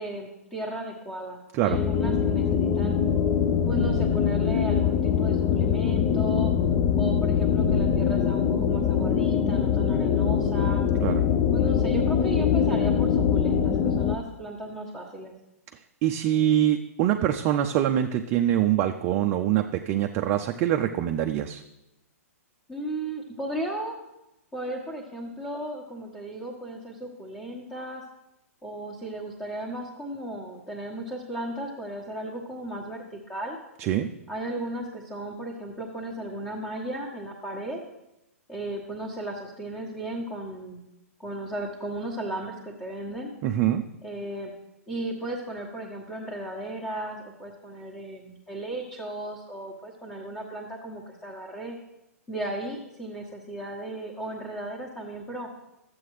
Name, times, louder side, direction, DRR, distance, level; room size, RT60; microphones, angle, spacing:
voice 1, 0.0-3.0 3.6-6.5 7.0-10.8 11.5-15.3 22.7-24.0 24.5-28.0 28.6-33.6 34.3-37.8 38.5-40.9 41.2-43.3 44.0-44.5 44.9-51.8 52.3-55.5, right 1 dB, 15° left, -2 dB, 1.3 m, -35 dB
sound 1, 1.7-14.2, left 7 dB, 30° left, 0.5 m, -23 dB
voice 2, 16.0-21.6 33.8-34.1 43.4-43.8, right 11 dB, 30° right, 5 dB, 0.4 m, -24 dB
12.5 x 7.8 x 3.2 m, 0.90 s
figure-of-eight pair, 115°, 8 cm